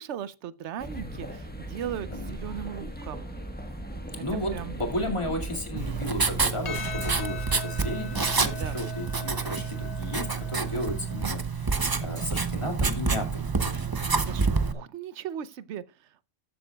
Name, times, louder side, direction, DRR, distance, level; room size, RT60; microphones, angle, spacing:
voice 1, 0.0-3.3 4.2-4.3 4.5-4.7 5.9-6.0 8.6-8.8 14.1-16.3, right 9 dB, 70° right, 0.9 m, -38 dB
sound 1, 0.8-6.5, right 1 dB, 10° left, 1.4 m, -38 dB
voice 2, 4.1-13.4, left 1 dB, 25° left, 2.3 m, -34 dB
Writing, 5.8-14.7, right 4 dB, 25° right, 0.5 m, -28 dB
Percussion, 6.6-11.3, left 8 dB, 60° left, 0.4 m, -40 dB
14.0 x 7.6 x 2.3 m
omnidirectional pair, 1.3 m